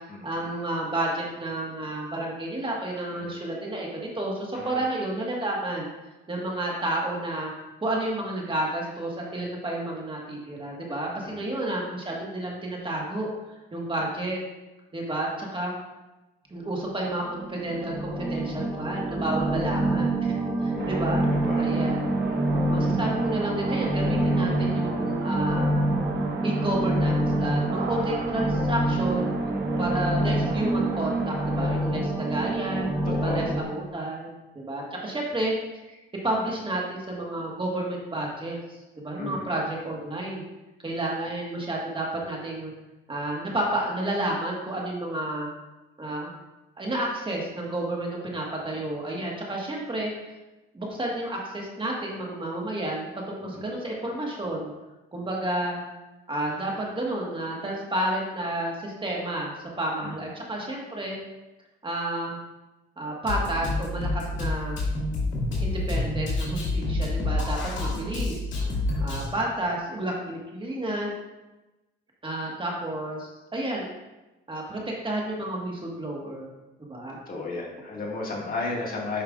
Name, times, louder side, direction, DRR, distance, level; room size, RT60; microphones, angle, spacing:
voice 1, 0.2-5.9 6.3-7.5 7.8-14.4 14.9-15.7 16.5-20.3 20.6-21.2 21.6-22.0 22.5-25.8 26.4-29.3 29.8-35.5 35.8-40.4 40.8-42.7 43.1-45.5 46.0-46.3 46.8-50.1 50.7-54.7 55.1-55.8 56.3-61.2 61.8-62.4 63.0-64.8 65.6-68.5 69.0-71.1 72.2-73.9 74.5-76.5 76.8-77.2, right 1 dB, 25° right, -2 dB, 1.6 m, -31 dB
voice 2, 11.1-11.5 20.7-21.7 29.5-29.6 33.1-33.5 39.2-39.5 53.4-53.6 60.0-60.3 67.7-68.1 77.3-79.2, left 3 dB, 45° left, -2 dB, 1.9 m, -35 dB
sound 1, 17.2-33.6, right 1 dB, 5° right, 1.1 m, -26 dB
sound 2, 20.8-31.9, right 5 dB, 65° right, 0.8 m, -37 dB
Drum kit, 63.3-69.3, left 2 dB, 70° left, 2.1 m, -28 dB
9.0 x 5.4 x 2.5 m, 1.1 s
cardioid pair, 90°, 20 cm